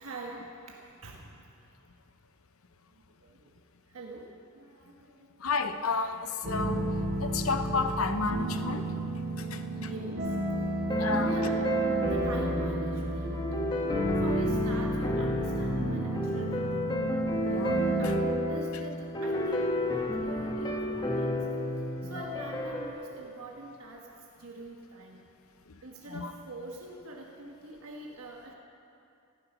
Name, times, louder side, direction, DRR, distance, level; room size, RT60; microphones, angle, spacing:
voice 1, 0.0-1.5 2.9-3.6 3.9-5.4 7.4-7.5 9.4-10.6 11.1-11.7 12.0-13.6 14.2-16.9 18.0-24.1 24.4-25.2 25.8-28.5, right 2 dB, 85° right, -1 dB, 1.4 m, -44 dB
voice 2, 5.4-6.9 7.2-8.8 9.5-9.6 11.0-11.3 17.5-17.8 18.0-18.1 26.1-26.3, left 4 dB, 75° left, 8 dB, 0.9 m, -31 dB
sound 1, 6.4-18.2, right 1 dB, 60° right, 4.1 m, -32 dB
sound 2, 10.9-22.9, left 1 dB, 20° left, 1.3 m, -31 dB
15.0 x 13.5 x 6.1 m, 2.6 s
head